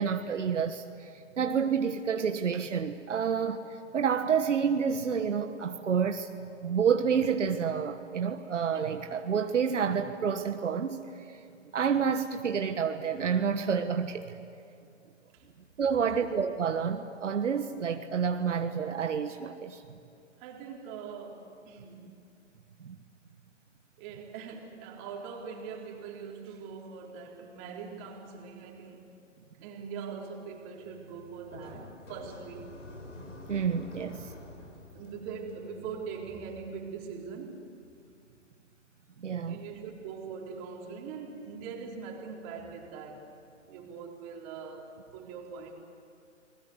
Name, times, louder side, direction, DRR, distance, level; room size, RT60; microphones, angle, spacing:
voice 1, 0.0-6.3 6.6-11.4 11.7-14.4 15.8-19.8 22.8-22.9 33.5-34.3 39.2-39.6, right 6 dB, 75° right, 1.5 m, -29 dB
voice 2, 20.4-22.2 24.0-29.1 29.6-32.7 34.9-37.7 39.4-43.4 43.6-45.7, right 6 dB, 30° right, 4.0 m, -42 dB
sound 1, 30.8-36.7, left 2 dB, 85° left, 6.9 m, -48 dB
30.0 x 21.0 x 8.2 m
hypercardioid pair, 145°, 37 cm